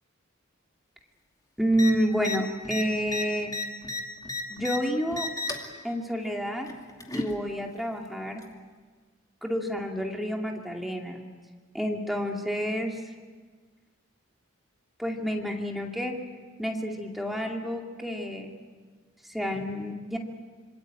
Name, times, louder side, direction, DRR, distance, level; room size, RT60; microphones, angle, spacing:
voice 1, 1.6-3.5 4.5-5.3 5.8-6.7 7.1-8.4 9.4-11.2 11.7-13.0 15.0-16.2 16.6-18.5 19.2-20.2, equal, ahead, 1 dB, 2.4 m, -29 dB
sound 1, 1.7-1.9 2.2-2.4 2.6-4.8 5.1-5.7 6.7-7.3 8.4-8.5, left 2 dB, 20° left, 2.5 m, -33 dB
26.5 x 25.0 x 8.9 m, 1.5 s
head